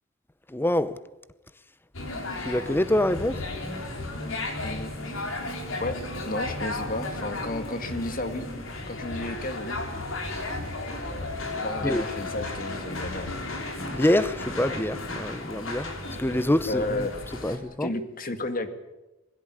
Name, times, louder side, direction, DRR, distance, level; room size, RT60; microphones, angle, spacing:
voice 1, 0.5-1.0 2.4-3.4 11.8-12.0 13.9-15.9 16.2-17.1 17.4-17.9, left 1 dB, 10° left, 0.8 m, -25 dB
sound 1, 1.9-17.6, left 2 dB, 80° left, 3.9 m, -34 dB
voice 2, 4.6-5.2 5.8-5.9 6.2-8.5 8.9-9.8 11.6-13.3 16.7-18.7, left 2 dB, 45° left, 2.1 m, -33 dB
21.5 x 16.0 x 9.8 m
head